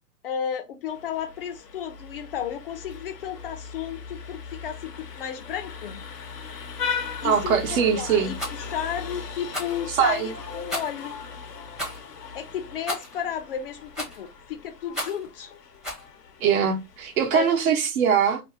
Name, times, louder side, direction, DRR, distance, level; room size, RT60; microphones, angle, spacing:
voice 1, 0.2-6.0 7.2-11.2 12.3-15.5 17.3-17.6, left 8 dB, 40° left, 0.5 m, -33 dB
Vehicle horn car horn honking, 0.9-17.7, left 6 dB, 90° left, 0.8 m, -38 dB
voice 2, 7.2-8.3 9.9-10.3 16.4-18.4, right 7 dB, 60° right, 0.9 m, -22 dB
Rattle, 8.4-8.6 9.5-9.8 10.7-11.0 11.7-12.0 12.9-13.2 13.9-14.3 14.9-15.3 15.8-16.1, equal, ahead, 0.6 m, -33 dB
2.7 x 2.3 x 3.4 m
hypercardioid pair, 125°, 47 cm